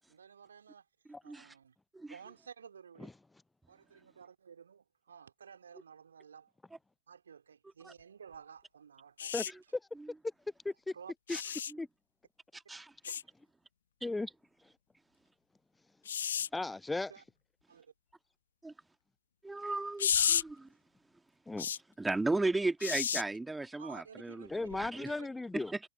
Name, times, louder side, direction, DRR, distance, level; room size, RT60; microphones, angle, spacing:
voice 1, 0.1-0.9 1.2-1.7 2.1-3.1 3.7-6.5 7.1-9.3 10.9-11.1 13.0-13.2 16.3-16.5 17.1-17.2 17.7-17.9 23.7-25.3, right 7 dB, 70° right, 2.7 m, -53 dB
sound 1, 9.2-9.5 11.3-11.7 13.0-13.2 16.1-16.5 20.0-20.4 21.6-21.8 22.8-23.2 24.7-24.9, left 8 dB, 65° left, 1.0 m, -32 dB
voice 2, 9.3-9.8 10.6-10.9 11.8-11.9 14.0-14.3 16.5-17.1 21.5-21.7 24.5-25.7, left 2 dB, 10° left, 0.4 m, -36 dB
voice 3, 12.5-12.9 18.6-18.7 19.4-20.7 22.0-24.5 24.8-25.1 25.5-25.8, right 2 dB, 10° right, 1.7 m, -35 dB
figure-of-eight pair, 90°, 0 cm